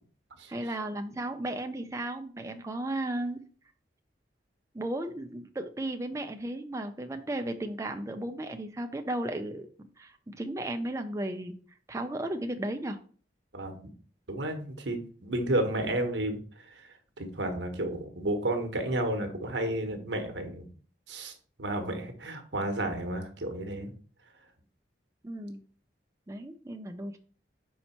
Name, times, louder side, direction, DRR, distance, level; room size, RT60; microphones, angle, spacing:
voice 1, 0.5-3.4 4.7-9.7 10.0-11.5 11.9-13.0 25.2-25.6 26.3-27.2, right 1 dB, 15° right, 6 dB, 0.4 m, -35 dB
voice 2, 14.3-20.7 21.1-23.9, right 1 dB, 85° right, 5 dB, 1.2 m, -32 dB
5.5 x 4.4 x 4.3 m, 0.43 s
head